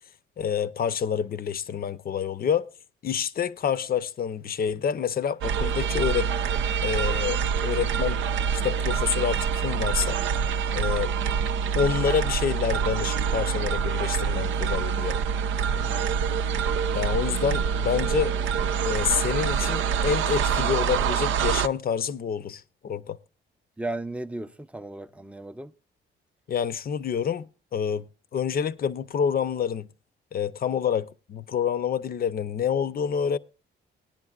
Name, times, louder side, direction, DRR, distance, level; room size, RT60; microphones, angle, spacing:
voice 1, 0.4-2.7 3.0-6.3 6.8-8.2 8.5-10.2 10.7-11.1 11.7-15.2 16.9-18.3 18.8-23.2 26.5-29.9 30.3-33.4, left 7 dB, 50° left, 0.6 m, -27 dB
sound 1, 5.4-21.7, right 7 dB, 75° right, 0.5 m, -26 dB
voice 2, 15.7-16.1 23.8-25.7, right 2 dB, 5° right, 0.5 m, -35 dB
19.0 x 10.5 x 2.4 m
cardioid pair, 90°, 20 cm